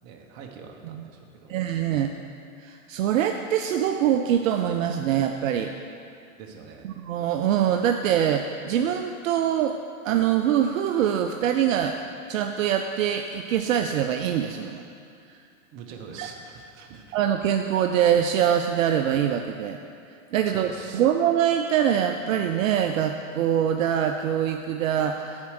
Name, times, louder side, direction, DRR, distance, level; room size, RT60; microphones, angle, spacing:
voice 1, 0.0-1.5 6.4-6.8 15.7-17.2 20.5-21.0, right 5 dB, 35° right, 2 dB, 1.0 m, -44 dB
voice 2, 1.5-2.1 2.6-5.8 6.8-9.8 10.0-12.0 12.3-14.8 16.2-16.3 17.1-19.8 20.3-25.5, right 9 dB, 65° right, 5 dB, 0.5 m, -24 dB
7.2 x 4.4 x 6.3 m, 2.4 s
hypercardioid pair, 125°, 42 cm